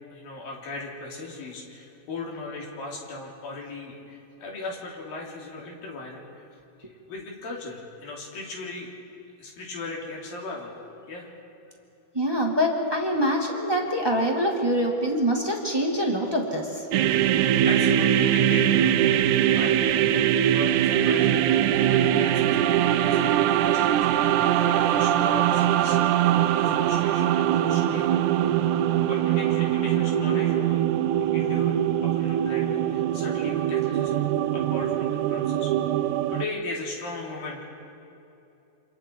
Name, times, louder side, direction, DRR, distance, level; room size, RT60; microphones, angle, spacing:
voice 1, 0.1-6.5 6.8-8.9 9.4-10.8 11.1-11.3 17.6-28.5 29.0-30.8 31.3-34.2 34.5-35.7 36.3-37.6, left 3 dB, 65° left, -2 dB, 5.0 m, -38 dB
voice 2, 12.1-16.9, equal, 10° right, 0 dB, 1.4 m, -25 dB
sound 1, 16.9-36.4, right 11 dB, 85° right, 1.8 m, -22 dB
28.0 x 26.0 x 4.7 m, 2.8 s
omnidirectional pair, 4.4 m